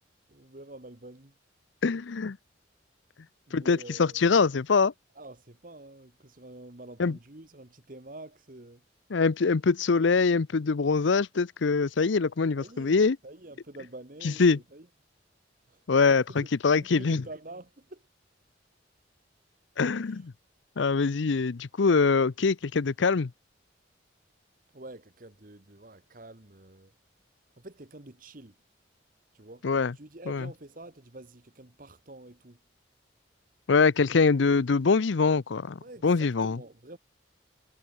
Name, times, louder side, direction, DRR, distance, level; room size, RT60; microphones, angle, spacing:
voice 1, 0.3-1.3 3.5-4.4 5.1-8.8 12.6-13.0 13.2-14.9 15.7-18.0 20.0-20.3 24.7-26.9 27.5-28.5 29.3-29.7 29.9-32.6 35.8-37.0, right 2 dB, 45° right, 1.5 m, -47 dB
voice 2, 1.8-2.4 3.5-4.9 7.0-7.2 9.1-13.2 14.2-14.6 15.9-17.2 19.8-20.3 20.8-23.3 29.6-29.9 30.3-30.4 33.7-36.6, left 4 dB, 75° left, 0.6 m, -24 dB
head